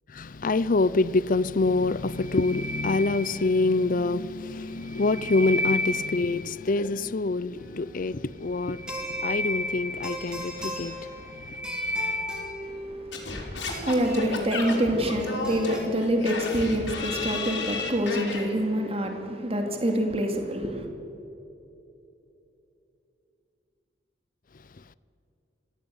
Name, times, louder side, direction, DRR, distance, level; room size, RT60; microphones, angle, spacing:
voice 1, 0.1-11.6, left 3 dB, 50° left, 0.6 m, -26 dB
sound 1, 2.1-3.8 4.7-6.6 8.5-10.6 11.1-12.7, left 1 dB, 80° right, 6.5 m, -32 dB
sound 2, 7.6-15.8, right 1 dB, 5° right, 5.4 m, -40 dB
voice 2, 12.6-20.9, equal, 35° right, 2.4 m, -27 dB
Singing / Scratching (performance technique), 13.1-18.4, left 3 dB, 80° left, 5.3 m, -33 dB
24.5 x 16.5 x 8.1 m
head